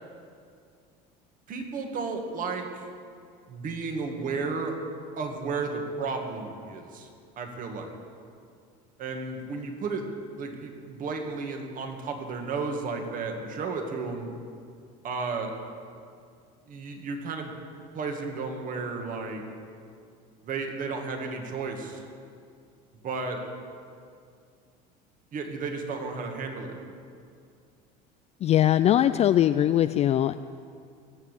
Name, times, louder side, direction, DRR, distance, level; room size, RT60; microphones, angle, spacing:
voice 1, 1.5-2.9 3.5-4.7 5.2-7.1 7.4-7.9 9.0-10.1 10.3-14.3 15.0-15.6 16.7-17.5 17.9-19.4 20.4-22.0 23.0-23.4 25.3-26.8, right 4 dB, 45° right, 3 dB, 2.2 m, -33 dB
voice 2, 28.4-30.3, left 11 dB, 35° left, 10 dB, 0.4 m, -21 dB
21.0 x 7.3 x 8.2 m, 2.3 s
supercardioid pair, 115°, 19 cm